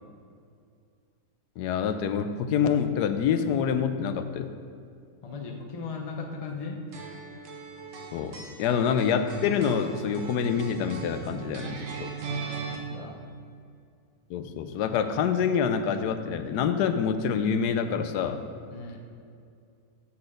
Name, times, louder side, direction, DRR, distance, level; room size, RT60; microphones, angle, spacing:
voice 1, 1.6-4.5 8.1-12.1 14.3-18.4, left 7 dB, 80° left, 9 dB, 1.1 m, -26 dB
voice 2, 5.2-6.8 12.3-13.2 18.7-19.0, left 4 dB, 40° left, 2 dB, 0.5 m, -37 dB
sound 1, 6.9-12.8, right 5 dB, 55° right, 1.2 m, -38 dB
6.2 x 5.8 x 6.5 m, 2.4 s
omnidirectional pair, 1.7 m